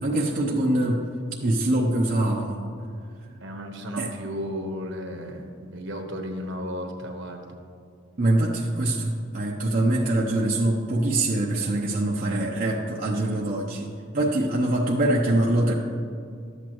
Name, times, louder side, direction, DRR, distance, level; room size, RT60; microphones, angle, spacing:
voice 1, 0.0-1.0 1.4-2.6 4.0-4.1 8.2-13.9 14.1-15.7, right 1 dB, 45° right, -2 dB, 0.7 m, -24 dB
voice 2, 3.4-7.5 12.2-12.5, equal, 65° right, 3 dB, 1.2 m, -34 dB
12.5 x 8.2 x 3.0 m, 2.4 s
head